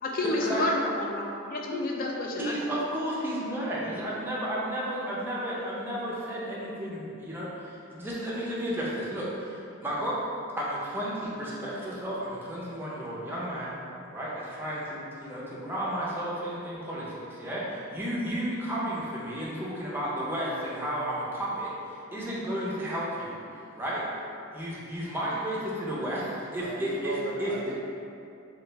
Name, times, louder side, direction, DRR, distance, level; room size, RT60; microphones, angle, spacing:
voice 1, 0.0-2.6 4.8-4.9, left 2 dB, 45° left, -1 dB, 0.4 m, -30 dB
voice 2, 2.4-10.2 10.6-13.8 14.1-21.7 22.1-23.3 23.8-24.0 24.5-27.1 27.4-27.5, equal, 10° right, -7 dB, 0.5 m, -33 dB
voice 3, 26.6-27.8, right 1 dB, 85° right, -1 dB, 0.5 m, -37 dB
3.1 x 2.4 x 3.3 m, 2.6 s
head